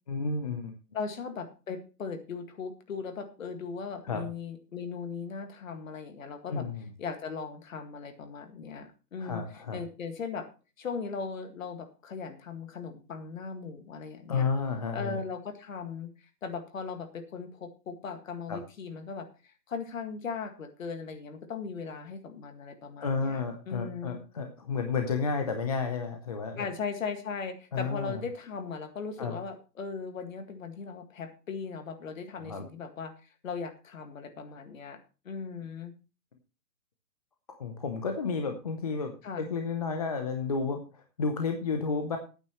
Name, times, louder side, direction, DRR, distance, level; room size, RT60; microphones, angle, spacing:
voice 1, 0.1-0.7 4.0-4.2 6.5-6.8 9.2-9.8 14.3-15.2 18.5-18.6 23.0-26.7 27.7-28.2 29.2-29.4 32.4-32.6 37.5-42.2, left 4 dB, 25° left, 5 dB, 0.7 m, -31 dB
voice 2, 0.9-6.7 7.0-10.5 10.8-14.5 14.9-24.2 26.5-35.9 39.2-39.5, left 5 dB, 50° left, 7 dB, 2.0 m, -38 dB
15.0 x 9.1 x 3.0 m, 0.33 s
hypercardioid pair, 165°, 49 cm